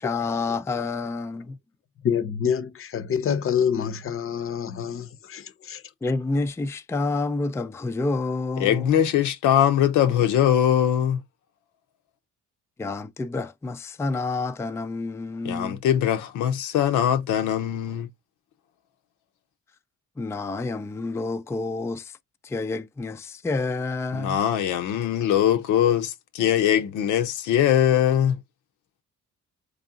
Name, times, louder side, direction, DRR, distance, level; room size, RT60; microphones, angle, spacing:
voice 1, 0.0-1.6 6.0-9.0 12.8-15.8 20.2-22.2 22.4-24.4, left 3 dB, 10° left, 0.3 m, -29 dB
voice 2, 2.0-5.8, left 7 dB, 45° left, 0.7 m, -27 dB
voice 3, 8.6-11.2 15.4-18.1 24.1-28.4, left 10 dB, 85° left, 0.7 m, -21 dB
4.6 x 2.5 x 2.7 m
cardioid pair, 90°, 30 cm